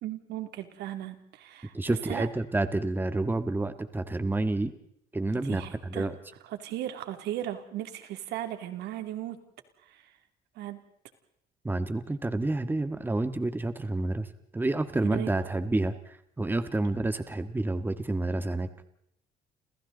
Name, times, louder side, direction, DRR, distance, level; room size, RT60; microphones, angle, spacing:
voice 1, 0.0-2.3 5.5-6.1 6.5-9.4 9.9-10.0 10.6-10.8 15.0-15.3, right 12 dB, 80° right, 7 dB, 2.8 m, -36 dB
voice 2, 1.7-4.7 5.1-6.1 11.6-14.3 14.5-18.7, right 2 dB, 10° right, 10 dB, 1.6 m, -29 dB
30.0 x 28.0 x 4.0 m, 0.74 s
cardioid pair, 110°, 17 cm